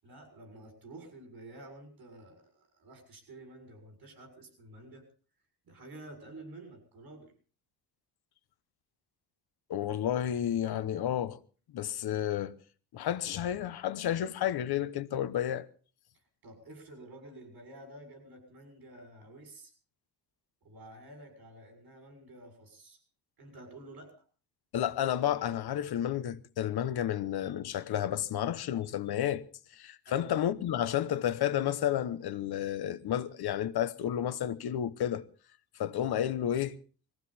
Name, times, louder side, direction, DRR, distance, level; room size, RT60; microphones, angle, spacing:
voice 1, 0.0-5.1 5.6-7.3 16.4-19.7 20.6-23.0 23.4-24.1 30.1-30.3, right 2 dB, 60° right, 6.9 m, -50 dB
voice 2, 9.7-11.4 11.7-12.5 12.9-15.7 24.7-29.4 29.7-35.2 35.7-36.8, left 10 dB, 70° left, 1.0 m, -31 dB
21.5 x 15.0 x 4.3 m
wide cardioid pair, 170°, 40 cm